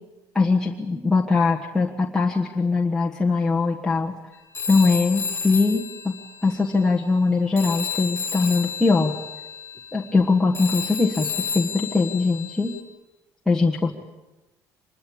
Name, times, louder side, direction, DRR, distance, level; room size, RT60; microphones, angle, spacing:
voice 1, 0.3-4.1 4.7-6.1 6.4-9.1 9.9-12.8 13.5-13.9, left 3 dB, 5° left, -3 dB, 1.4 m, -21 dB
Telephone, 4.5-7.3 7.6-12.8, left 5 dB, 30° left, 4.2 m, -32 dB
25.5 x 21.5 x 8.6 m, 1.1 s
cardioid pair, 165°, 7 cm